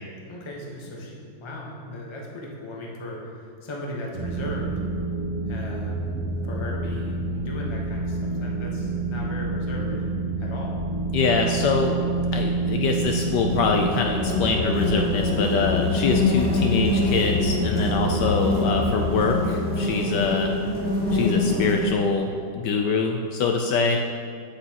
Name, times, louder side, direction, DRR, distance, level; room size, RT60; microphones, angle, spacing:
voice 1, 0.3-4.7 5.5-6.2 6.4-10.1 10.4-10.8, left 1 dB, 25° left, -2 dB, 0.7 m, -37 dB
sound 1, 4.1-19.3, right 3 dB, 85° right, 2.3 m, -29 dB
voice 2, 11.1-12.0 12.3-20.5 21.1-22.3 22.6-24.0, left 4 dB, 75° left, 2 dB, 1.1 m, -24 dB
sound 2, 12.8-21.9, left 2 dB, 30° right, 2.1 m, -26 dB
sound 3, 14.1-19.4, left 3 dB, 60° right, 0.9 m, -29 dB
8.2 x 8.0 x 2.9 m, 2.4 s
omnidirectional pair, 2.1 m